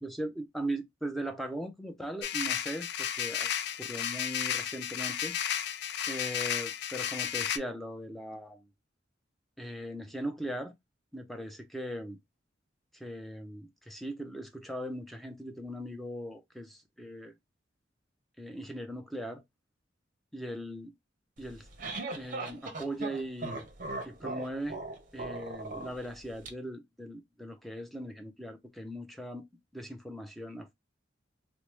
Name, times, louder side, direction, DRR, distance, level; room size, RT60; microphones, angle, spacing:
voice 1, 0.0-3.5 3.8-5.4 6.1-8.6 9.6-10.7 11.1-12.2 12.9-17.3 18.4-19.4 20.3-20.9 21.4-21.7 22.1-23.7 24.0-24.8 25.1-29.5 29.7-30.7, right 1 dB, ahead, 0.5 m, -39 dB
sound 1, 2.2-7.6, left 9 dB, 60° left, 0.3 m, -33 dB
sound 2, 21.4-26.5, right 3 dB, 45° right, 0.6 m, -39 dB
3.2 x 2.0 x 3.0 m
head